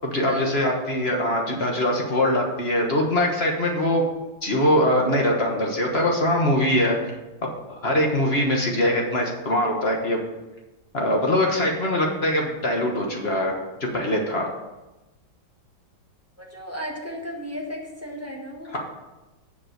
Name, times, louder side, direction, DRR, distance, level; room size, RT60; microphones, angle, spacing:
voice 1, 0.0-4.0 4.4-7.0 7.7-10.2 10.9-13.5 13.8-14.5 18.7-18.8, left 1 dB, 35° left, 0 dB, 1.2 m, -22 dB
voice 2, 16.4-18.8, equal, 10° right, -1 dB, 0.9 m, -34 dB
7.0 x 6.1 x 6.7 m, 1.1 s
omnidirectional pair, 2.1 m